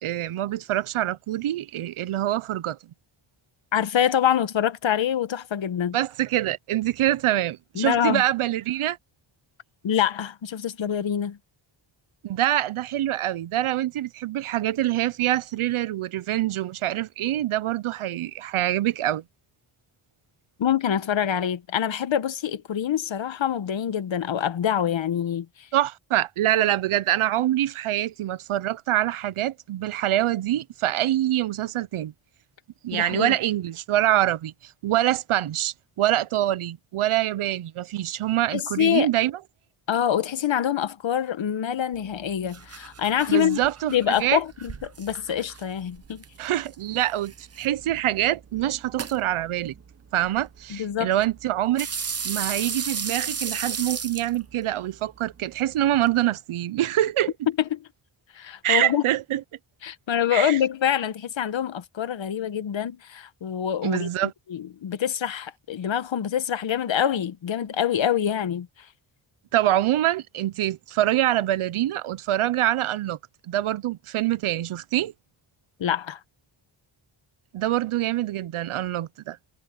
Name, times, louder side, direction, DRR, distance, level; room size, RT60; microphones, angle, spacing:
voice 1, 0.0-2.8 5.9-9.0 12.2-19.2 25.7-32.1 32.8-39.3 43.3-44.4 46.4-49.7 50.1-51.9 52.2-57.3 58.6-59.4 60.3-60.6 63.8-64.3 69.5-73.2 73.5-75.1 77.5-79.4, right 13 dB, 90° right, 0.8 m, -25 dB
voice 2, 3.7-6.0 7.8-8.2 9.8-11.4 20.6-25.5 32.9-33.3 38.5-39.1 39.9-43.6 43.9-46.2 50.7-51.1 57.7-57.8 58.3-59.0 59.8-68.7 75.8-76.2, left 9 dB, 65° left, 1.3 m, -25 dB
sound 1, 41.9-56.2, right 6 dB, 30° right, 0.9 m, -37 dB
wide cardioid pair, 115°, 49 cm